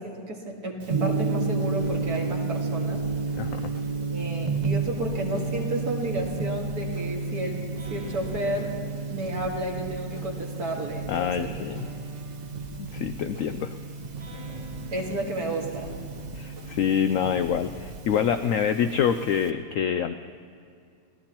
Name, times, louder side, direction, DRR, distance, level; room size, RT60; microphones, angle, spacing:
voice 1, 0.0-3.0 3.5-3.6 4.1-8.7 9.1-11.5 14.9-15.9, right 1 dB, 60° right, -1 dB, 2.4 m, -32 dB
Gong, 0.8-19.5, right 4 dB, 40° right, 0.6 m, -32 dB
sound 1, 1.8-18.9, right 2 dB, 20° right, 3.6 m, -42 dB
voice 2, 3.4-3.7 11.1-11.9 12.8-13.8 16.3-20.2, left 8 dB, 80° left, 9 dB, 0.7 m, -26 dB
26.5 x 17.0 x 3.0 m, 2.4 s
omnidirectional pair, 1.9 m